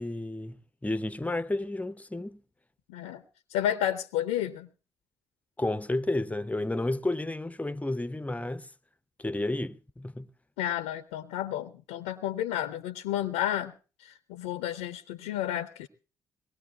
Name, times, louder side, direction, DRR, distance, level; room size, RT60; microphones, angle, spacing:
voice 1, 0.0-2.4 5.6-8.7 9.2-10.3, left 2 dB, 15° left, 0.8 m, -31 dB
voice 2, 2.9-3.2 3.5-4.7 10.6-13.7 14.0-15.9, left 11 dB, 75° left, 0.7 m, -31 dB
22.5 x 19.0 x 2.4 m
hypercardioid pair, 40°, 11 cm